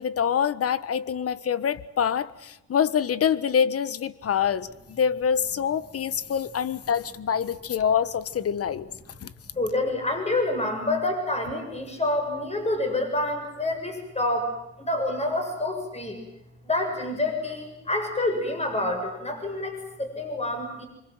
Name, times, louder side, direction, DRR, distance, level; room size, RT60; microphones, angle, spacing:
voice 1, 0.0-8.9 9.2-9.3, left 8 dB, 50° left, 16 dB, 1.3 m, -25 dB
voice 2, 9.5-14.5 14.8-16.2 16.6-20.9, left 2 dB, 20° left, 4 dB, 7.6 m, -27 dB
26.0 x 25.0 x 7.8 m, 0.87 s
cardioid pair, 90°, 30 cm